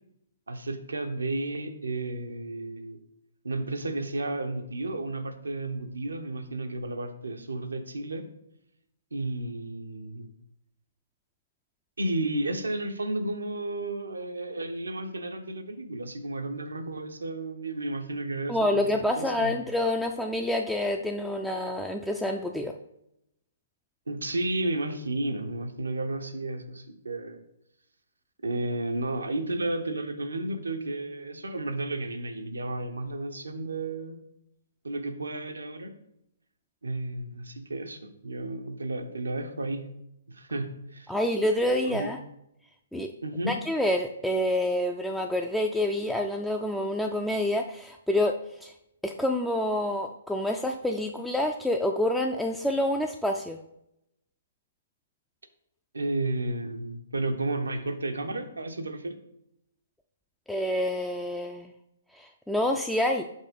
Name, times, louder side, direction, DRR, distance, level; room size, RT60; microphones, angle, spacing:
voice 1, 0.5-3.0 3.4-8.3 9.1-10.3 12.0-18.9 19.2-19.6 24.1-27.4 28.4-34.2 34.8-35.9 36.8-39.9 40.3-41.1 41.9-42.1 43.2-43.6 55.9-59.2, right 2 dB, 80° right, 7 dB, 0.7 m, -32 dB
voice 2, 18.5-22.7 41.1-42.2 42.9-43.1 43.5-48.3 48.6-48.7 49.0-53.6 60.5-61.7 62.1-63.2, left 1 dB, ahead, 1 dB, 0.3 m, -27 dB
5.4 x 3.5 x 5.0 m, 0.81 s
figure-of-eight pair, 130°, 0 cm